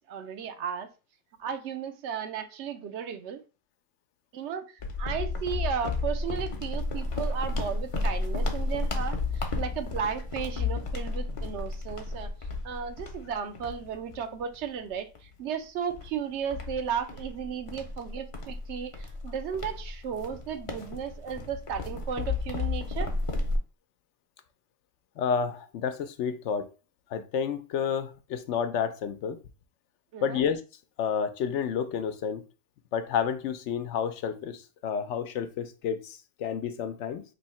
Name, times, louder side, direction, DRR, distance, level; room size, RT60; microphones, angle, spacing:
voice 1, 0.1-0.9 1.4-3.4 4.3-4.7 5.0-12.3 12.6-23.1 30.1-30.4, right 7 dB, 80° right, 0.9 m, -34 dB
sound 1, 4.8-14.7 15.1-15.3 15.9-23.6, left 3 dB, 35° left, 0.6 m, -32 dB
voice 2, 25.2-26.7 27.1-29.4 30.2-30.6 31.0-32.4 32.9-37.2, left 7 dB, 85° left, 0.9 m, -30 dB
3.1 x 2.7 x 4.2 m
omnidirectional pair, 1.2 m